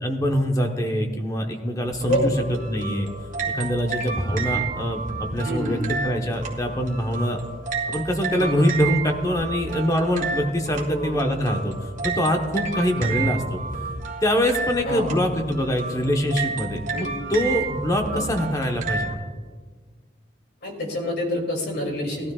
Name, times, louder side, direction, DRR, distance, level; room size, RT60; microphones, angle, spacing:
voice 1, 0.0-2.3 2.7-3.1 3.5-5.8 6.0-7.4 7.9-11.7 12.0-13.6 14.2-19.3, equal, 20° left, 3 dB, 1.1 m, -24 dB
sound 1, 1.9-19.1, right 4 dB, 45° right, 1.7 m, -31 dB
voice 2, 5.4-5.9 8.4-8.7 10.8-11.4 13.0-13.3 14.8-15.2 16.9-17.1 18.1-18.3 20.6-22.3, left 1 dB, 60° left, 1 dB, 2.7 m, -27 dB
19.0 x 13.0 x 2.4 m, 1.5 s
head